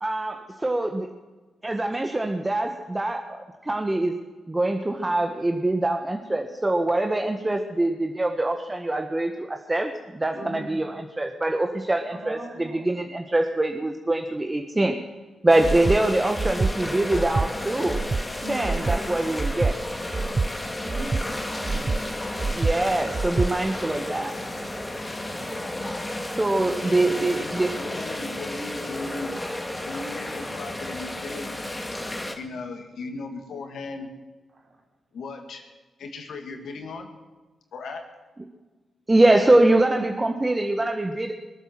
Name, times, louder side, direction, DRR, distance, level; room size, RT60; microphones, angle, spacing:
voice 1, 0.0-1.1 1.6-4.2 4.5-15.0 15.4-18.0 18.5-19.8 22.5-24.3 26.3-27.7 39.1-41.3, right 2 dB, 25° right, 4 dB, 1.4 m, -24 dB
voice 2, 10.3-10.7 12.2-13.0 18.4-18.9 20.8-22.2 25.2-25.7 34.5-34.6, right 1 dB, 60° right, 1 dB, 4.1 m, -40 dB
sound 1, 15.5-32.3, left 1 dB, 20° left, 2.4 m, -33 dB
Breathing, 15.6-16.0 16.4-16.7 17.1-17.5 17.9-18.2 18.6-19.0 19.4-19.7 20.1-20.5 20.9-21.2 21.6-22.0 22.4-22.7 23.1-23.5, right 3 dB, 40° right, 0.5 m, -25 dB
voice 3, 26.6-29.3 29.8-31.5 32.3-34.1 35.1-35.6 36.0-37.1 37.7-38.0, left 3 dB, 75° left, 5 dB, 2.2 m, -37 dB
22.0 x 8.1 x 7.7 m, 1.2 s
supercardioid pair, 45°, 0 cm